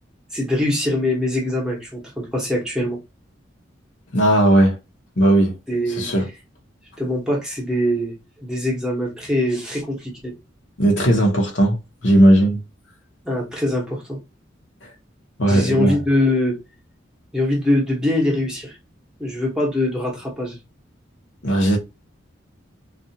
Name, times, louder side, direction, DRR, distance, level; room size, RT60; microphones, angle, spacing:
voice 1, 0.3-3.0 5.7-6.1 7.0-8.1 8.4-10.3 13.2-14.2 15.5-16.6 17.3-18.8 19.2-20.6, left 1 dB, 5° right, 0.9 m, -23 dB
voice 2, 4.1-4.8 5.2-5.5 6.0-6.3 10.8-11.8 12.0-12.6 14.8-14.9 15.4-15.9 21.4-21.8, right 1 dB, 65° left, 0.9 m, -16 dB
2.5 x 2.4 x 2.7 m
head